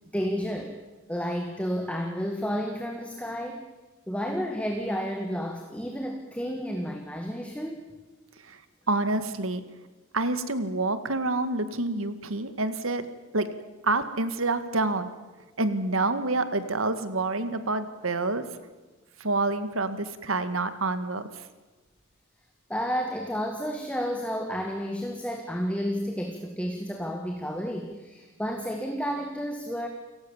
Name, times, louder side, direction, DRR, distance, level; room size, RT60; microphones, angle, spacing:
voice 1, 0.1-0.8 1.1-3.7 4.1-7.9 22.7-29.9, equal, 5° left, 4 dB, 1.8 m, -31 dB
voice 2, 8.9-9.6 10.1-13.1 13.3-13.5 13.8-15.1 15.6-18.4 19.2-21.3, right 2 dB, 85° right, 11 dB, 2.0 m, -27 dB
29.5 x 18.5 x 7.3 m, 1.2 s
head